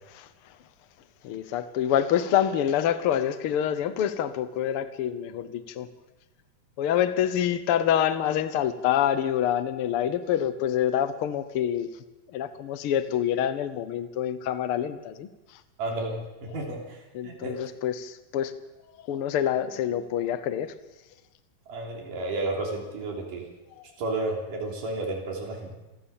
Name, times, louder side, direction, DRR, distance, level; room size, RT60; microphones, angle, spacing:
voice 1, 0.1-0.6 1.2-5.9 6.8-12.0 12.3-15.6 16.5-16.7 17.1-18.5 19.0-20.7 23.8-23.9, left 10 dB, 80° left, 12 dB, 1.2 m, -27 dB
voice 2, 15.8-17.7 21.7-23.5 24.0-25.8, right 2 dB, 70° right, 0 dB, 4.9 m, -32 dB
27.5 x 14.5 x 7.2 m, 1.1 s
omnidirectional pair, 3.9 m